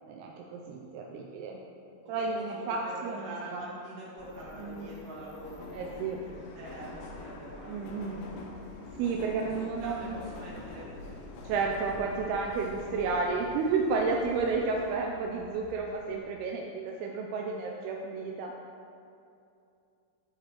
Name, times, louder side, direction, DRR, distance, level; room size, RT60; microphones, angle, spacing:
voice 1, 0.0-1.6 2.1-3.6 4.6-4.9 5.7-6.2 7.7-8.4 9.0-10.2 11.4-18.5, right 4 dB, 85° right, 0 dB, 2.2 m, -32 dB
voice 2, 2.0-8.3 9.5-11.0, right 1 dB, 45° right, -6 dB, 2.3 m, -45 dB
Subway metro underground, 4.2-16.2, left 2 dB, 80° left, 3.0 m, -46 dB
12.5 x 4.9 x 4.3 m, 2.5 s
omnidirectional pair, 5.2 m